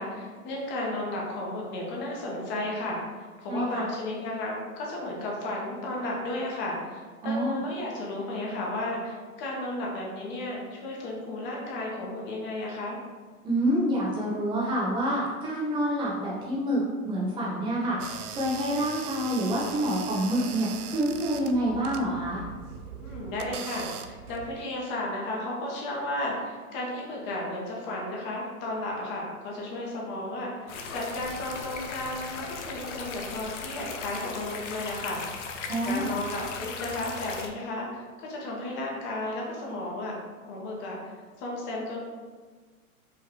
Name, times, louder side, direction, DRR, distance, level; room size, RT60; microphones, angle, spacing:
voice 1, 0.0-13.0 23.0-35.2 35.8-40.2 40.5-42.0, left 1 dB, 25° left, -2 dB, 1.0 m, -34 dB
voice 2, 3.5-3.8 7.2-7.6 13.4-22.4 35.7-36.1, right 1 dB, 10° right, -5 dB, 0.6 m, -27 dB
sound 1, 18.0-24.7, right 8 dB, 80° right, 0.5 m, -40 dB
sound 2, 30.7-37.5, left 4 dB, 55° left, 0.7 m, -38 dB
4.9 x 2.9 x 3.0 m, 1.5 s
hypercardioid pair, 135°, 44 cm